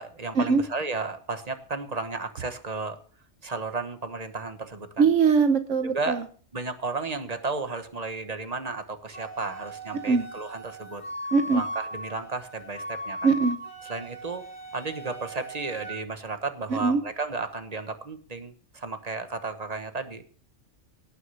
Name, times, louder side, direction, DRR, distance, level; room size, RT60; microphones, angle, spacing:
voice 1, 0.0-3.0 3.4-5.0 5.9-6.2 6.5-11.0 11.5-13.3 13.9-14.4 14.7-20.2, right 3 dB, 35° right, 9 dB, 1.3 m, -33 dB
voice 2, 5.0-6.2 10.1-10.2 11.3-11.6 13.2-13.6 16.7-17.0, right 5 dB, 85° right, 9 dB, 1.3 m, -21 dB
Wind instrument woodwind instrument, 9.1-16.0, right 1 dB, 55° left, 3.2 m, -38 dB
18.0 x 6.5 x 5.6 m, 0.43 s
omnidirectional pair, 1.2 m